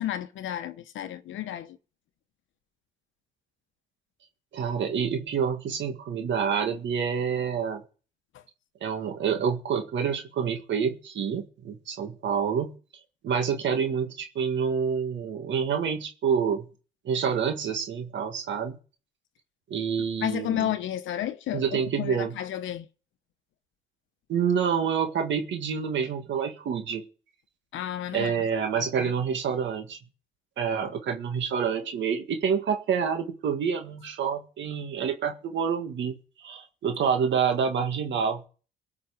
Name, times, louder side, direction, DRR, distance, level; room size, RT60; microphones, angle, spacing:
voice 1, 0.0-1.8 20.2-21.6 22.0-22.9 27.7-28.3 29.0-29.1, left 12 dB, 80° left, 0.9 m, -31 dB
voice 2, 4.5-7.8 8.8-12.7 13.2-16.7 17.1-18.8 19.7-20.7 21.5-22.3 24.3-27.0 28.1-30.0 30.6-38.4, right 7 dB, 70° right, 1.8 m, -27 dB
17.5 x 6.0 x 7.3 m
cardioid pair, 90°, 20 cm